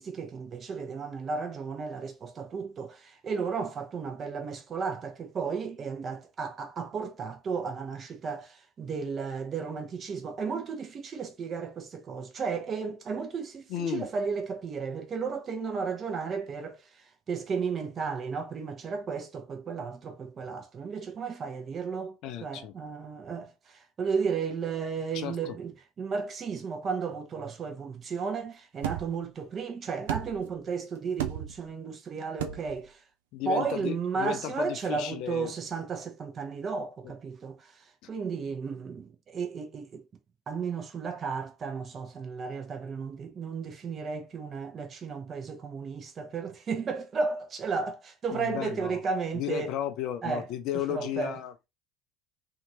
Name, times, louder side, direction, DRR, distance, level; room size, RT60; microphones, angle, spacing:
voice 1, 0.0-16.8 17.3-22.1 22.4-25.7 26.0-33.0 33.4-40.0 40.5-49.7 50.2-50.4 50.7-51.3, right 5 dB, 35° right, 0.8 m, -34 dB
voice 2, 13.7-14.1 22.2-22.7 25.1-25.6 33.3-35.5 48.3-49.0 49.3-51.7, left 10 dB, 55° left, 0.5 m, -34 dB
sound 1, 28.8-29.2 30.1-30.6 31.2-31.7 32.4-32.8, right 12 dB, 70° right, 0.3 m, -34 dB
2.8 x 2.6 x 2.7 m
figure-of-eight pair, 65°, 0 cm